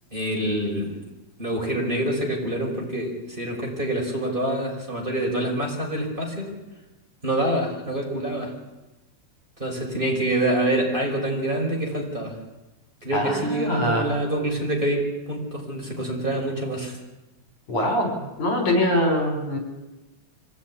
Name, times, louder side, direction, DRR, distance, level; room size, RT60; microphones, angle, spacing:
voice 1, 0.1-1.0 1.4-6.5 7.2-8.5 9.6-12.4 13.0-17.0, right 1 dB, 15° right, -2 dB, 5.5 m, -26 dB
voice 2, 13.1-14.0 17.7-18.1 18.4-19.6, left 1 dB, 70° left, 3 dB, 6.4 m, -23 dB
25.0 x 16.5 x 9.9 m, 1.0 s
omnidirectional pair, 3.5 m